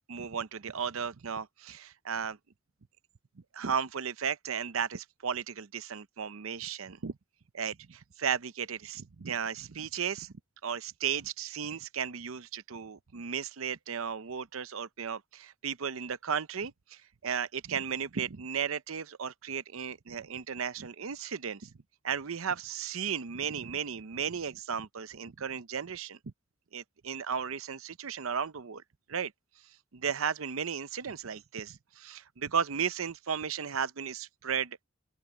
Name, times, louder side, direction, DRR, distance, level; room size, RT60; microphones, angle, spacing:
voice 1, 0.1-2.4 3.5-7.2 7.5-10.3 10.6-21.7 22.0-26.2 26.7-28.8 29.1-29.3 29.9-34.8, right 7 dB, 75° right, 0.7 m, -35 dB
open air
head